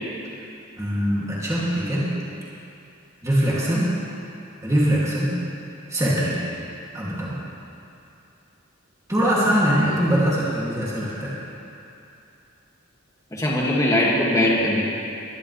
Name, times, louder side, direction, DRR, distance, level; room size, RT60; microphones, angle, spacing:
voice 1, 0.8-2.1 3.2-3.9 4.6-5.4 5.9-6.4 6.9-7.4 9.1-11.3, equal, 15° right, -8 dB, 2.6 m, -22 dB
voice 2, 13.3-14.8, left 1 dB, 15° left, -5 dB, 2.2 m, -21 dB
22.5 x 11.0 x 3.3 m, 2.7 s
head